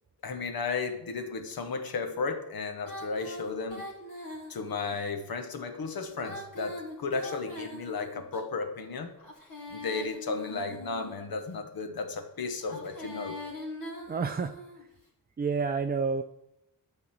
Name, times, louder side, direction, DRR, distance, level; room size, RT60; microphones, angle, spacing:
voice 1, 0.2-3.8 4.5-9.1 9.7-13.4, left 4 dB, 75° left, 7 dB, 1.2 m, -34 dB
Female singing, 2.8-5.0 6.1-8.4 9.2-11.3 12.6-14.8, left 1 dB, 60° left, 2.7 m, -42 dB
voice 2, 14.1-14.6 15.4-16.2, right 5 dB, 25° right, 8 dB, 0.4 m, -29 dB
11.5 x 4.0 x 7.4 m, 0.87 s
wide cardioid pair, 135°, 36 cm